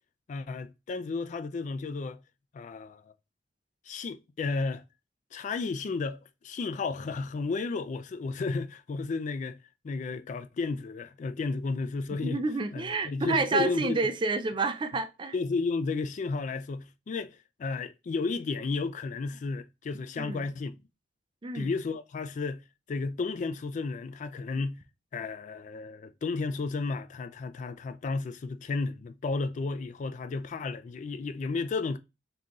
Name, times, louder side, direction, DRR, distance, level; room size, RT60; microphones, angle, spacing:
voice 1, 0.3-2.2 2.5-3.1 3.9-4.8 5.3-9.6 9.8-12.4 12.7-14.0 15.3-20.8 21.5-22.6 22.9-24.8 25.1-32.0, left 4 dB, 45° left, 0.3 m, -33 dB
voice 2, 12.2-15.3 20.2-20.4 21.4-21.7, right 3 dB, 30° right, 0.4 m, -29 dB
3.6 x 2.9 x 3.6 m
head